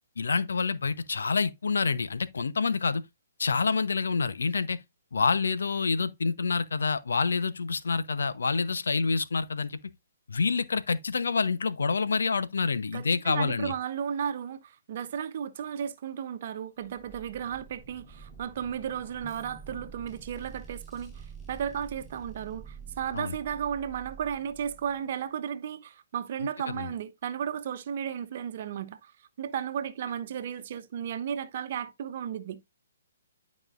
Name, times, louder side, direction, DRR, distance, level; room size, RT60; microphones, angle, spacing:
voice 1, 0.2-3.0 3.4-4.8 5.1-9.8 10.3-13.7 23.1-23.3 26.7-26.9, left 4 dB, 70° left, 0.9 m, -27 dB
voice 2, 12.9-29.1 29.4-32.6, right 8 dB, 45° right, 1.0 m, -34 dB
sound 1, 16.8-25.3, right 5 dB, 5° left, 5.2 m, -48 dB
12.5 x 5.4 x 2.6 m
figure-of-eight pair, 130°, 0 cm